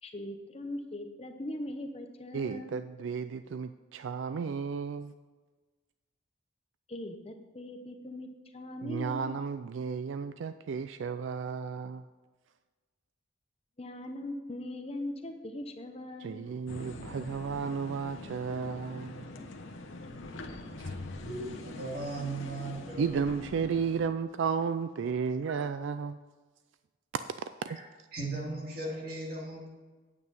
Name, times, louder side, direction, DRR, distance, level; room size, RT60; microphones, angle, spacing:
voice 1, 0.0-2.7 6.9-9.3 13.8-16.5, left 1 dB, 30° left, 5 dB, 0.8 m, -40 dB
voice 2, 2.3-5.1 8.8-12.1 16.2-19.3 20.8-21.0 23.0-26.2 27.1-27.3 27.6-27.8, right 6 dB, 70° right, 12 dB, 0.4 m, -33 dB
sound 1, 16.7-24.1, left 2 dB, 80° left, 1.1 m, -43 dB
voice 3, 21.2-23.2 28.1-29.7, right 2 dB, 50° right, -2 dB, 2.8 m, -37 dB
9.5 x 8.4 x 5.4 m, 1.3 s
head